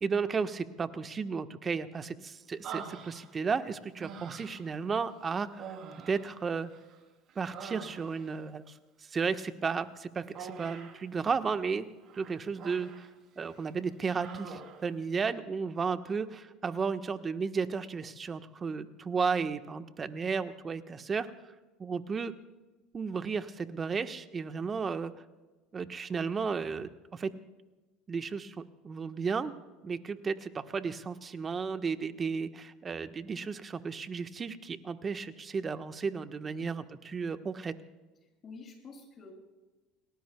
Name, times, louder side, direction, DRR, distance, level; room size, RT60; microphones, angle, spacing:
voice 1, 0.0-5.7 6.1-6.7 7.3-11.9 12.1-13.1 13.4-21.3 21.8-22.3 22.9-25.1 25.7-27.3 28.1-29.5 29.8-37.7, right 5 dB, 30° right, 9 dB, 1.2 m, -34 dB
Human voice, 2.6-3.5 4.0-4.7 5.5-7.0 7.3-8.4 10.4-11.0 12.1-13.1 13.4-13.7 14.1-14.9, right 6 dB, 50° right, 3.2 m, -45 dB
voice 2, 38.4-39.3, left 4 dB, 35° left, 2 dB, 7.2 m, -49 dB
30.0 x 19.0 x 2.3 m, 1.2 s
hypercardioid pair, 80°, 0 cm